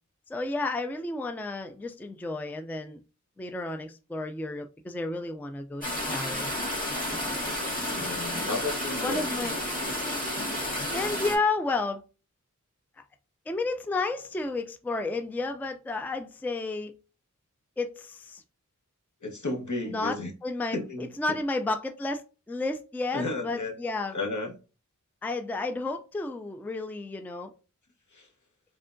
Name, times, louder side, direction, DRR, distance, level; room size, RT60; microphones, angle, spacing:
voice 1, 0.3-3.0 3.4-6.5 9.0-9.5 10.9-12.0 13.5-16.9 17.8-18.4 19.8-24.1 25.2-27.5, left 3 dB, 5° left, 0.4 m, -32 dB
sound 1, 5.8-11.4, left 1 dB, 25° left, 1.8 m, -31 dB
voice 2, 7.9-9.3 19.2-20.3 20.7-21.1 23.1-23.7 24.1-24.5 28.1-28.3, left 2 dB, 65° left, 1.2 m, -33 dB
3.7 x 3.2 x 2.6 m
wide cardioid pair, 65°, 32 cm